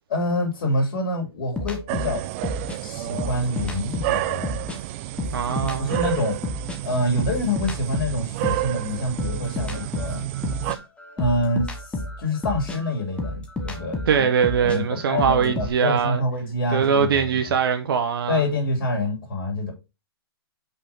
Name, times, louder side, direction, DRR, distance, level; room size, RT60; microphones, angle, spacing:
voice 1, 0.1-2.2 2.8-4.6 5.5-6.4 6.8-10.2 11.2-14.3 14.6-17.5 18.3-19.7, left 1 dB, 55° left, 3.0 m, -26 dB
sound 1, 1.6-4.8 5.1-8.7 9.2-15.7, left 2 dB, 10° left, 1.1 m, -31 dB
sound 2, 1.9-10.7, right 16 dB, 30° right, 0.4 m, -30 dB
voice 2, 5.3-6.0 14.1-16.2 16.7-18.4, right 7 dB, 60° right, 0.9 m, -22 dB
5.6 x 5.1 x 4.3 m
hypercardioid pair, 135°, 13 cm